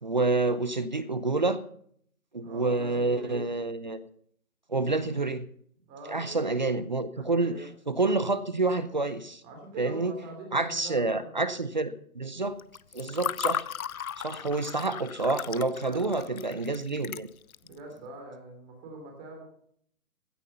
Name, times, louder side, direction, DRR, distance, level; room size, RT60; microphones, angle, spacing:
voice 1, 0.0-1.6 2.3-4.0 4.7-5.4 6.1-7.6 7.9-9.4 9.8-10.1 10.5-12.6 12.9-13.7 14.2-17.3, right 3 dB, 30° right, 0.6 m, -28 dB
voice 2, 2.4-3.4 5.9-6.7 7.2-7.7 9.4-11.4 13.2-13.3 14.4-14.5 15.9-16.5 17.6-19.4, right 2 dB, 15° right, 3.0 m, -44 dB
Water / Fill (with liquid), 12.6-17.7, left 9 dB, 70° left, 0.7 m, -35 dB
16.0 x 9.8 x 5.6 m
hypercardioid pair, 165°, 44 cm